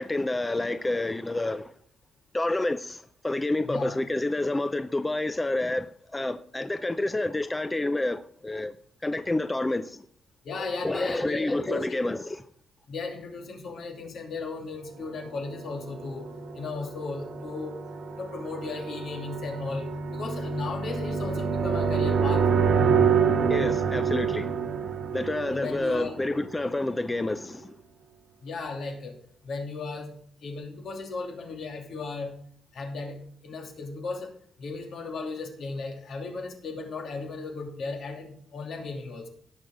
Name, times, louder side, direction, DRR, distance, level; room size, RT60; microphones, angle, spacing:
voice 1, 0.0-1.7 2.3-8.7 9.0-10.0 10.8-12.4 23.5-24.6 25.1-27.8, left 2 dB, 10° left, 0.4 m, -29 dB
voice 2, 3.6-4.0 10.4-12.0 12.9-16.3 16.5-17.8 18.2-22.5 25.5-26.1 28.4-29.2 29.4-30.2 30.4-32.4 32.7-39.3, left 3 dB, 60° left, 2.7 m, -36 dB
sound 1, 15.7-26.5, right 6 dB, 70° right, 1.9 m, -27 dB
18.0 x 6.3 x 3.8 m
wide cardioid pair, 175°, 0 cm